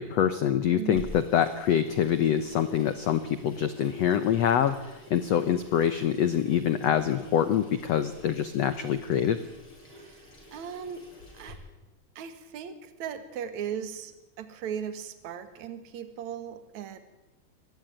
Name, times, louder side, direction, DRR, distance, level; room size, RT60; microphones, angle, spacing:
voice 1, 0.0-9.4, left 9 dB, 85° left, 12 dB, 1.4 m, -25 dB
voice 2, 0.7-1.0 9.9-11.0 11.3-11.6 12.2-17.0, right 8 dB, 55° right, 10 dB, 2.9 m, -38 dB
Water tap faucet / Sink (filling or washing), 0.9-11.5, left 1 dB, 35° left, 7.5 m, -49 dB
23.5 x 19.0 x 9.2 m, 0.99 s
omnidirectional pair, 4.4 m